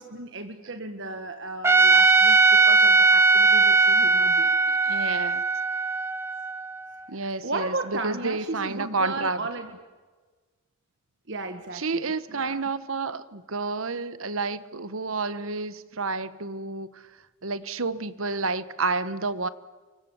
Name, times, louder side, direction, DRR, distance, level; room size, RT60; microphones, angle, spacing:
voice 1, 0.0-4.5 7.1-9.7 11.3-12.6, right 2 dB, 55° right, 6 dB, 1.6 m, -35 dB
Trumpet, 1.6-6.8, right 3 dB, 10° right, 0.7 m, -19 dB
voice 2, 4.9-5.4 7.1-9.4 11.7-17.1 17.4-19.5, right 3 dB, 75° right, 13 dB, 1.3 m, -30 dB
29.5 x 24.5 x 7.2 m, 1.4 s
head